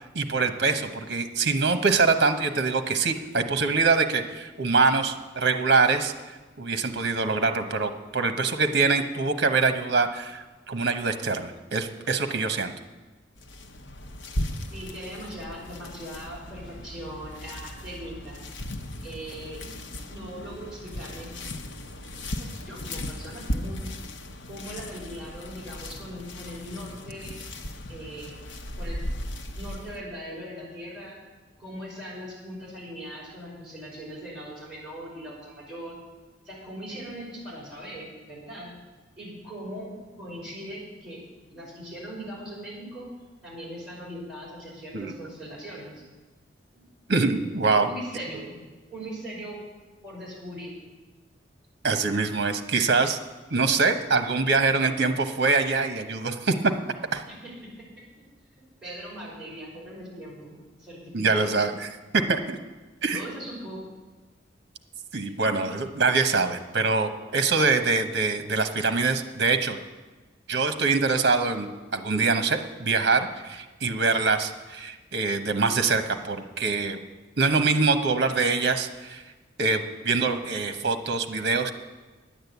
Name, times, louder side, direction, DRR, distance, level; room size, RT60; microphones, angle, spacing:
voice 1, 0.1-6.1 6.6-12.7 44.9-45.1 47.1-47.9 51.8-53.2 53.5-56.7 57.1-57.2 61.1-61.9 62.3-62.6 63.0-63.2 65.1-69.8 70.5-77.0 77.4-79.2 79.6-81.7, right 4 dB, 65° right, 8 dB, 1.0 m, -24 dB
sound 1, 13.4-30.0, left 1 dB, 85° left, 0.9 m, -37 dB
voice 2, 14.7-18.4 19.0-19.7 20.1-21.3 22.4-23.8 24.5-27.4 27.9-28.3 28.8-29.0 29.6-31.1 31.6-35.9 36.4-38.7 39.2-39.9 40.2-41.2 41.5-43.1 43.4-46.0 46.7-46.8 47.4-48.5 48.9-49.6 50.0-50.7 57.2-57.4 58.5-60.5 60.8-61.6 63.1-63.8, equal, 5° right, -7 dB, 5.6 m, -40 dB
10.5 x 8.9 x 8.1 m, 1.2 s
head